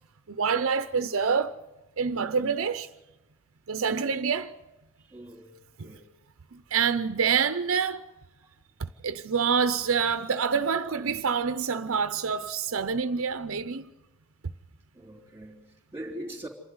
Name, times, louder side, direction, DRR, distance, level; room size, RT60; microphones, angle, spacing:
voice 1, 0.3-1.5 2.0-2.9 3.7-4.5 5.8-5.9 6.5-8.1 9.0-13.9, right 6 dB, 65° right, 0.6 m, -27 dB
voice 2, 5.0-6.1 8.4-8.5 14.9-16.5, right 1 dB, 10° right, 3.4 m, -42 dB
27.0 x 12.0 x 9.5 m
head